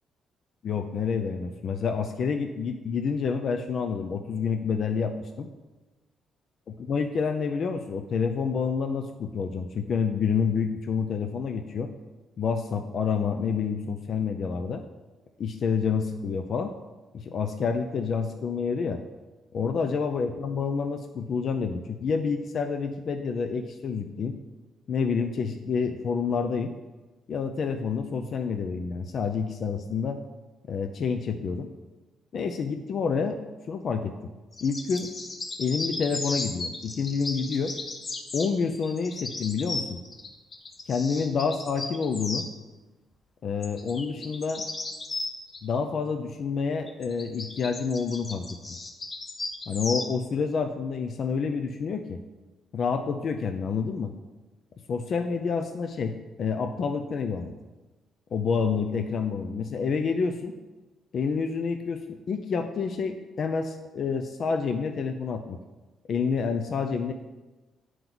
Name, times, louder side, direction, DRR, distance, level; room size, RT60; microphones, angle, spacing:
voice 1, 0.6-5.5 6.7-11.9 12.4-14.8 15.4-16.7 17.1-19.0 19.5-24.4 24.9-26.7 27.3-30.2 30.7-31.7 32.3-33.4 33.7-34.1 34.6-35.1 35.6-37.8 38.3-40.0 40.9-42.5 43.4-44.6 45.6-48.5 49.7-52.2 52.7-54.1 54.9-57.5 58.3-60.5 61.1-65.6 66.1-67.1, left 5 dB, 55° left, 6 dB, 0.5 m, -28 dB
sound 1, 34.5-42.5 43.6-45.6 46.9-50.1, left 3 dB, 40° left, 0.9 m, -36 dB
9.3 x 4.6 x 4.0 m, 1.2 s
cardioid pair, 90°, 0 cm